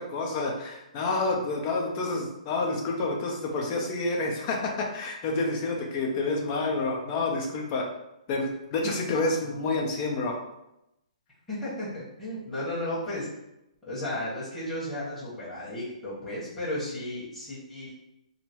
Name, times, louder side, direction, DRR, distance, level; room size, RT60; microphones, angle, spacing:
voice 1, 0.0-7.9 8.3-10.4, left 3 dB, 25° left, 0 dB, 0.7 m, -29 dB
voice 2, 11.5-13.3 13.8-17.9, left 1 dB, 5° left, -12 dB, 1.4 m, -34 dB
3.8 x 2.1 x 4.4 m, 0.87 s
hypercardioid pair, 165°, 4 cm